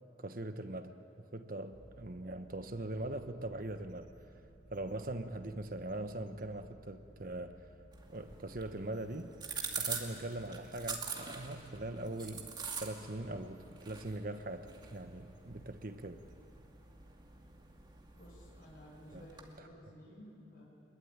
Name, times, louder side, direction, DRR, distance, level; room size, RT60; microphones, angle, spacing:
voice 1, 0.2-1.0 1.3-4.1 4.7-7.7 8.1-9.3 9.8-12.5 12.8-16.2 19.1-19.2, right 1 dB, 50° right, 9 dB, 1.1 m, -41 dB
sound 1, 1.7-18.9, right 1 dB, 65° right, 3.0 m, -60 dB
sound 2, 7.9-19.6, right 5 dB, 25° right, 2.4 m, -45 dB
voice 2, 18.1-20.6, equal, 55° left, -4 dB, 6.5 m, -54 dB
27.5 x 22.0 x 9.6 m, 2.9 s
head